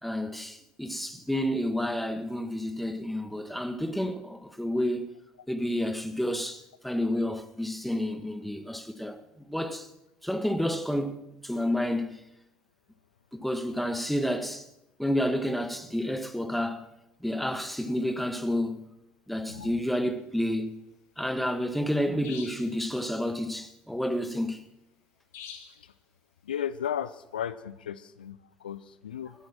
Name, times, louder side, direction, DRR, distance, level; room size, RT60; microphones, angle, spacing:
voice 1, 0.0-5.1 5.5-9.9 10.2-12.3 13.3-14.7 15.0-16.9 17.2-18.9 19.3-20.8 21.2-24.6, equal, ahead, 1.6 m, -30 dB
sound 1, 22.2-22.7 25.3-25.8, left 7 dB, 60° left, 2.1 m, -44 dB
voice 2, 26.5-29.3, left 9 dB, 80° left, 0.5 m, -35 dB
13.5 x 13.0 x 6.2 m
figure-of-eight pair, 55°, 5 cm